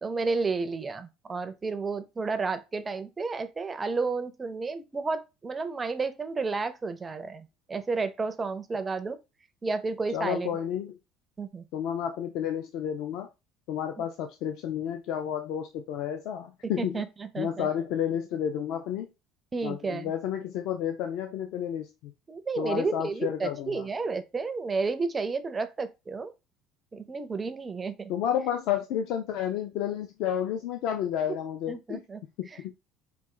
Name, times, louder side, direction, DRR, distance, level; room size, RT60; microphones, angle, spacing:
voice 1, 0.0-9.2 9.6-10.5 11.4-11.6 16.8-17.7 19.5-20.1 22.3-26.3 26.9-28.1 31.7-32.2, right 4 dB, 15° right, 0.4 m, -31 dB
voice 2, 10.1-11.0 11.7-13.3 13.7-17.0 17.4-19.1 19.6-22.1 22.6-23.8 28.1-32.0 32.4-32.7, left 9 dB, 60° left, 0.4 m, -31 dB
4.3 x 2.6 x 3.6 m
cardioid pair, 160°, 0 cm